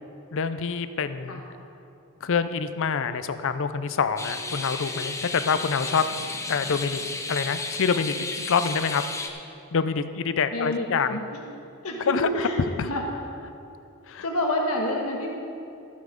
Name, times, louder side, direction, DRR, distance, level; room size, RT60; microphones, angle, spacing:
voice 1, 0.3-1.4 2.2-6.1 6.5-7.0 7.3-9.0 9.7-11.2 12.1-12.3 12.8-12.9 14.1-14.2, left 6 dB, 60° left, 12 dB, 0.5 m, -26 dB
sound 1, 4.2-9.3, left 3 dB, 15° left, 0.7 m, -33 dB
voice 2, 10.5-11.4 11.8-13.0 14.2-15.3, left 1 dB, 90° left, -1 dB, 1.4 m, -28 dB
13.0 x 8.3 x 5.2 m, 2.8 s
head